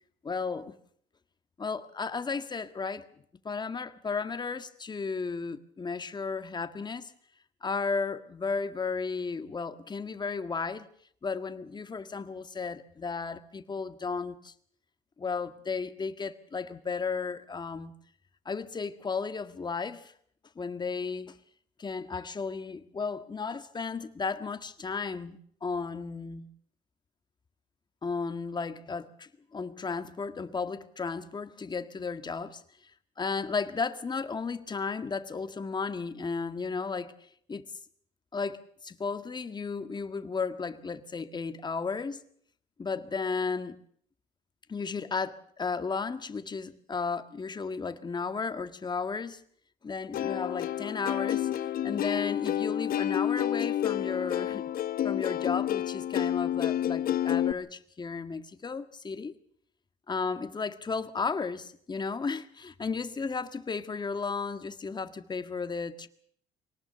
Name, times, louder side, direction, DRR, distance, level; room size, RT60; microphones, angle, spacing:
voice 1, 0.2-0.7 1.6-3.1 3.4-7.1 7.6-10.9 11.2-14.5 15.2-17.9 18.4-20.1 20.5-21.4 21.8-26.5 28.0-32.6 33.2-37.1 37.5-37.7 38.3-42.2 42.8-43.8 44.7-49.4 49.8-51.5 51.8-54.6 55.0-59.3 60.1-66.1, left 4 dB, 25° left, 1.8 m, -34 dB
Plucked string instrument, 50.1-57.5, left 11 dB, 60° left, 0.9 m, -29 dB
24.5 x 19.0 x 6.9 m
cardioid pair, 110°, 17 cm